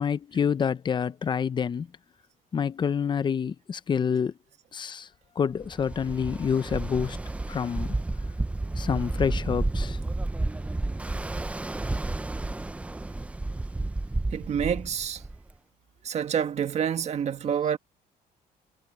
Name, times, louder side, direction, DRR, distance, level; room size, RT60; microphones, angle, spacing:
voice 1, 0.0-1.9 2.5-4.3 4.7-5.1 5.4-7.2 7.5-7.9 8.8-10.0, left 7 dB, 30° left, 0.7 m, -27 dB
Ocean, 5.6-15.5, right 2 dB, 10° right, 0.5 m, -31 dB
voice 2, 14.3-15.2 16.0-17.8, right 8 dB, 45° right, 1.5 m, -28 dB
cardioid pair, 145°, 16 cm